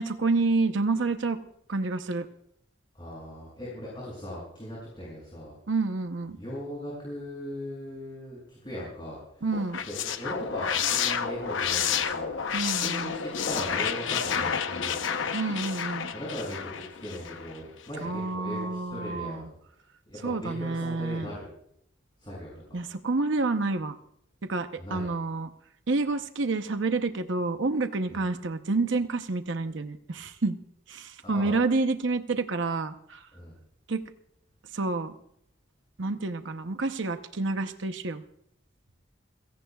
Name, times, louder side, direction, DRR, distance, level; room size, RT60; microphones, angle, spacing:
voice 1, 0.0-1.4 1.7-2.3 5.7-6.4 9.4-9.8 12.5-13.1 15.3-16.1 18.0-19.5 20.2-21.3 22.7-24.0 24.5-25.5 25.9-30.6 30.9-33.2 33.9-34.0 34.7-35.1 36.0-38.2, right 3 dB, 70° right, 8 dB, 0.8 m, -28 dB
voice 2, 2.9-5.5 6.3-9.5 9.8-12.4 12.7-15.0 16.1-19.5 20.1-21.5 22.2-22.5 24.8-25.1 28.1-28.2 31.2-31.6 33.3-33.6, equal, 25° left, -6 dB, 6.9 m, -39 dB
sound 1, 9.5-17.6, left 7 dB, 75° left, 0.8 m, -30 dB
29.5 x 16.5 x 2.4 m, 0.71 s
head